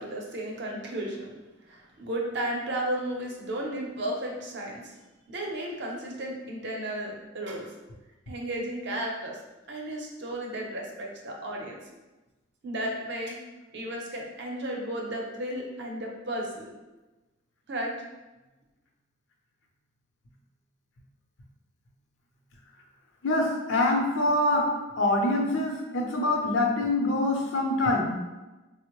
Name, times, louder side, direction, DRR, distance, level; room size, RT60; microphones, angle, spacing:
voice 1, 0.0-1.3 1.6-5.0 5.3-7.7 8.3-9.4 9.7-11.8 12.6-13.4 13.7-16.7 17.7-17.9, right 1 dB, 65° right, -1 dB, 0.7 m, -34 dB
voice 2, 23.2-28.0, left 2 dB, 80° left, 1 dB, 0.6 m, -25 dB
4.2 x 2.0 x 3.0 m, 1.1 s
head